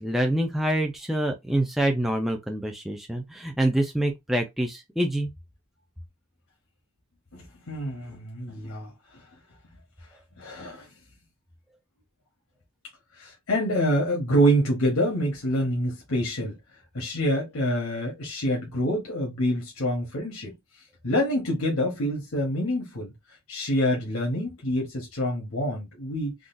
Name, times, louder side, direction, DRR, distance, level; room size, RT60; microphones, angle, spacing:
voice 1, 0.0-5.3, right 1 dB, ahead, 0.3 m, -26 dB
voice 2, 7.3-9.3 10.4-10.9 13.1-16.6 16.9-20.5 21.0-23.1 23.5-26.3, equal, 70° left, 1.0 m, -26 dB
3.7 x 2.4 x 2.5 m
head